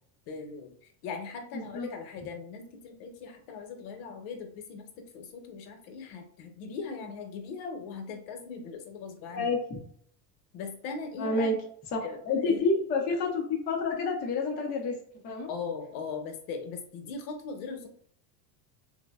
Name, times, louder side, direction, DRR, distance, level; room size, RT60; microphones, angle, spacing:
voice 1, 0.3-9.5 10.5-11.5 12.0-12.6 15.5-17.9, left 5 dB, 60° left, 4 dB, 0.7 m, -39 dB
voice 2, 1.5-1.9 9.3-9.8 11.2-11.6 11.9-15.0 15.2-15.5, left 3 dB, 20° left, -2 dB, 0.3 m, -29 dB
3.2 x 2.0 x 2.2 m, 0.62 s
supercardioid pair, 130°, 48 cm